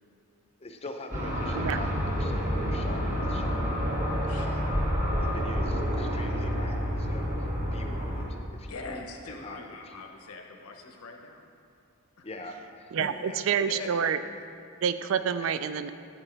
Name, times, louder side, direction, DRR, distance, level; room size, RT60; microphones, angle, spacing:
voice 1, 0.6-3.0 3.3-3.7 4.2-4.7 5.2-10.0 12.2-12.9 13.2-13.4 13.8-13.9 15.4-15.5, left 2 dB, 25° left, 4 dB, 0.5 m, -44 dB
sound 1, 1.1-8.2, equal, 35° right, 1.4 m, -29 dB
voice 2, 4.0-4.5 5.5-5.6 8.6-11.4 12.2-12.3 13.0-13.1 13.7-13.9, left 3 dB, 80° left, 3 dB, 0.9 m, -42 dB
voice 3, 12.9-14.2 14.8-15.9, right 7 dB, 65° right, 12 dB, 0.3 m, -28 dB
8.7 x 8.4 x 3.3 m, 2.4 s
head